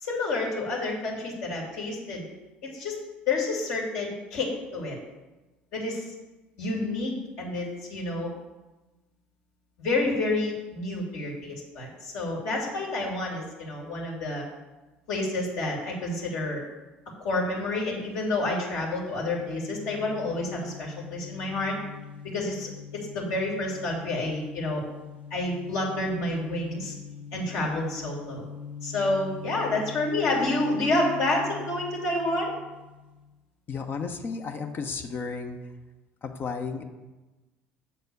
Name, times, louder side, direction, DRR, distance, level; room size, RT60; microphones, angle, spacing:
voice 1, 0.0-2.2 2.6-3.0 3.3-5.0 5.7-6.1 6.6-8.3 9.8-14.4 15.1-16.6 17.2-21.8 22.2-24.8 25.3-26.9 27.3-28.5 28.8-32.5, left 2 dB, 60° left, -3 dB, 2.4 m, -29 dB
sound 1, 18.9-33.4, left 7 dB, 85° left, 0.8 m, -43 dB
voice 2, 33.7-35.6 36.2-36.8, left 5 dB, 40° left, 4 dB, 0.9 m, -33 dB
7.1 x 4.2 x 6.7 m, 1.1 s
hypercardioid pair, 60°, 5 cm